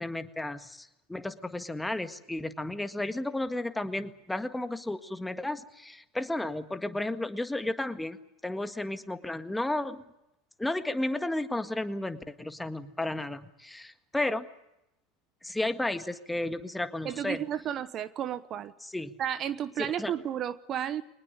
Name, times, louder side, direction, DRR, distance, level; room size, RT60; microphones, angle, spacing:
voice 1, 0.0-8.2 8.4-10.0 10.6-14.5 15.4-17.4 18.8-19.1 19.8-20.1, left 1 dB, 5° left, 9 dB, 1.7 m, -33 dB
voice 2, 17.0-18.7 19.2-21.0, right 10 dB, 40° right, 15 dB, 1.0 m, -32 dB
23.5 x 20.0 x 8.3 m, 0.86 s
hypercardioid pair, 85°, 0 cm